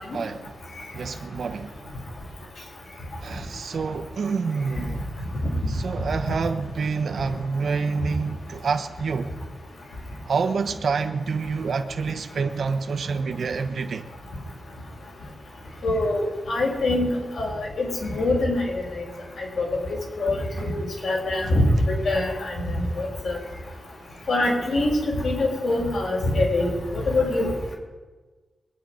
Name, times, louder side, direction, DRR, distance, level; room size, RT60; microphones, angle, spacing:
voice 1, 0.1-0.5 0.9-1.8 3.2-5.1 5.7-9.3 10.3-14.0, right 5 dB, 60° right, 1.0 m, -27 dB
voice 2, 15.8-18.6 19.0-19.1 19.4-19.7 20.2-20.8 21.0-23.4 24.3-24.9 25.2-27.5, left 2 dB, 70° left, 5.7 m, -24 dB
22.5 x 9.9 x 5.1 m
wide cardioid pair, 175°, 0 cm